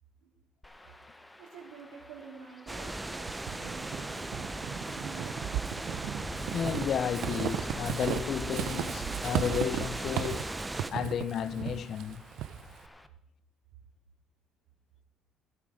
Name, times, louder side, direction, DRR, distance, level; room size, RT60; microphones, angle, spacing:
Chirp tweet / Wind / Stream, 0.6-13.1, left 1 dB, 10° left, 0.9 m, -53 dB
voice 1, 1.4-5.4, right 6 dB, 90° right, 2.9 m, -49 dB
sound 1, 2.7-10.9, right 2 dB, 10° right, 0.5 m, -37 dB
Walk footsteps / Squeak, 3.3-12.9, right 11 dB, 70° right, 0.6 m, -36 dB
voice 2, 6.5-12.2, left 8 dB, 50° left, 0.5 m, -33 dB
16.5 x 7.7 x 4.9 m
cardioid pair, 110°, 0 cm